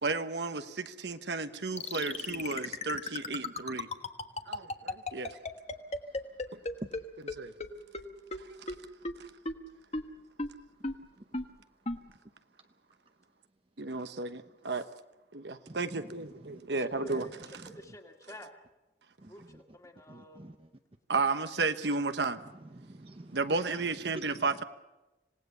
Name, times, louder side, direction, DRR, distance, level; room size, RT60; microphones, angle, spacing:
voice 1, 0.0-3.9 4.5-5.4 7.3-7.5 13.8-14.8 15.3-17.3 21.1-22.4 23.3-24.6, right 3 dB, 70° right, 1.1 m, -33 dB
sound 1, 1.8-7.0 7.3-7.4 7.6-7.7 7.9-8.0 8.3-8.4 8.7-8.8 9.1-9.2 9.5-9.6 9.9-10.0 10.4-10.5 10.8-10.9 11.3-11.4 11.9-12.0, left 2 dB, 35° left, 1.3 m, -33 dB
voice 2, 2.2-3.0 5.3-5.5 6.8-7.1 11.2-11.3 15.7-16.6 16.9-17.0 17.6-17.7 19.2-19.6 20.1-20.7 22.5-23.4 23.8-24.6, right 1 dB, 30° right, 0.7 m, -48 dB
voice 3, 16.7-18.5 19.3-20.5, equal, 20° left, 2.2 m, -50 dB
26.5 x 18.0 x 6.8 m
head